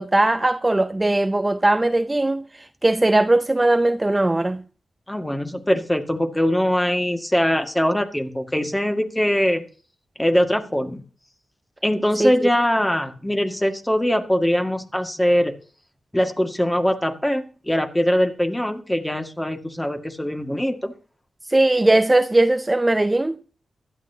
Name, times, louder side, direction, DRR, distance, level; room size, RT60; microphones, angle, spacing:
voice 1, 0.0-4.6 12.2-12.5 21.4-23.4, right 2 dB, 25° right, 0.5 m, -19 dB
voice 2, 5.1-9.6 10.2-11.0 11.8-15.5 16.1-20.9, equal, 10° left, 2.0 m, -22 dB
15.5 x 12.0 x 2.8 m
cardioid pair, 45°, 0 cm